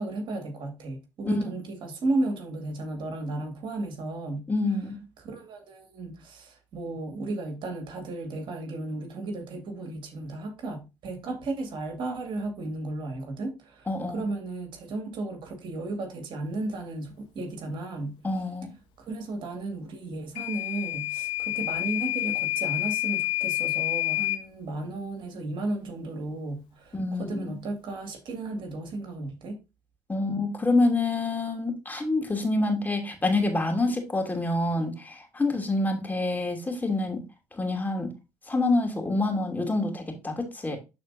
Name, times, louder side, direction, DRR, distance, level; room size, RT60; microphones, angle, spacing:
voice 1, 0.0-4.5 5.2-13.9 14.1-18.1 19.0-29.6, right 2 dB, 60° right, 2.2 m, -34 dB
voice 2, 4.5-5.0 13.9-14.2 18.2-18.7 26.9-27.5 30.1-37.2 37.5-38.1 38.5-40.8, left 2 dB, 20° left, 2.7 m, -27 dB
Microwave oven / Alarm, 20.4-24.4, left 16 dB, 75° left, 1.5 m, -28 dB
12.0 x 4.3 x 2.7 m
supercardioid pair, 70°, 9 cm